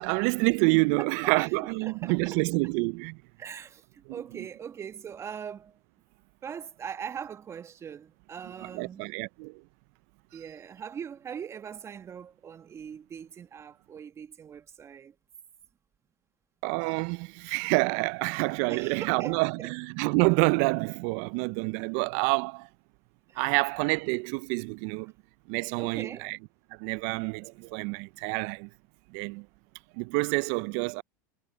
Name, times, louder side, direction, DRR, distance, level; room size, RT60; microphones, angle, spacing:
voice 1, 0.0-3.2 8.7-9.6 16.6-22.7 23.4-25.1 25.5-26.4 26.8-28.7 29.1-29.5 29.9-31.0, right 29 dB, 60° right, 0.6 m, -27 dB
voice 2, 1.0-1.5 1.8-2.4 3.4-5.8 6.4-9.0 10.3-15.1 18.7-19.7 23.3-23.5 25.8-26.3, right 7 dB, 30° right, 1.5 m, -41 dB
hypercardioid pair, 90°, 9 cm